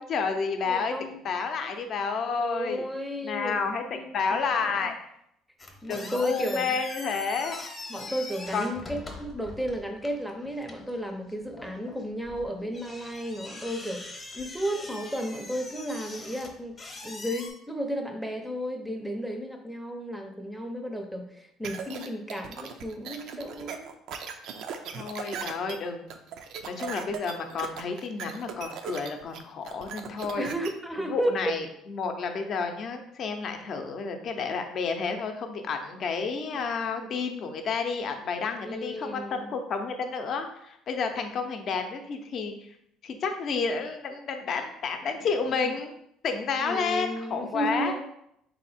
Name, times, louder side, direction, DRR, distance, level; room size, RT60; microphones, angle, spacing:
voice 1, 0.0-0.9 1.2-2.9 3.2-3.8 4.1-4.9 5.9-7.6 8.5-8.7 24.9-26.2 26.7-30.5 31.1-42.6 43.0-46.0 46.2-48.0, left 5 dB, 50° left, 6 dB, 0.6 m, -30 dB
voice 2, 0.7-1.2 2.4-4.9 5.8-6.8 7.9-16.8 17.0-23.9 30.4-31.3 36.5-36.6 37.0-37.1 38.6-39.5 45.5-45.7 46.6-48.1, equal, ahead, 3 dB, 0.6 m, -33 dB
sound 1, 5.6-17.5, left 2 dB, 25° left, 0.8 m, -43 dB
sound 2, 21.6-30.7, right 7 dB, 65° right, 0.4 m, -38 dB
3.6 x 2.8 x 4.1 m, 0.75 s
cardioid pair, 100°, 0 cm